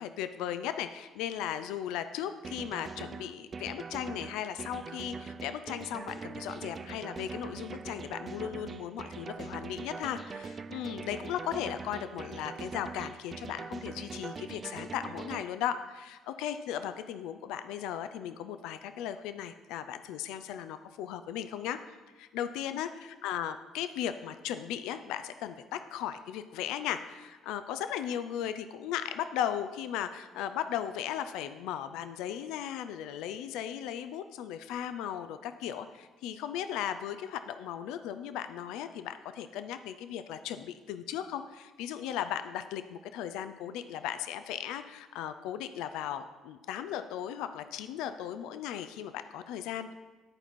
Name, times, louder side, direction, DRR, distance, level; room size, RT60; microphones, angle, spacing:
voice 1, 0.0-21.8 22.2-49.9, left 10 dB, 75° left, 10 dB, 0.3 m, -37 dB
sound 1, 2.4-15.4, right 5 dB, 40° right, 0.3 m, -42 dB
10.5 x 4.4 x 4.2 m, 1.2 s
hypercardioid pair, 60°, 0 cm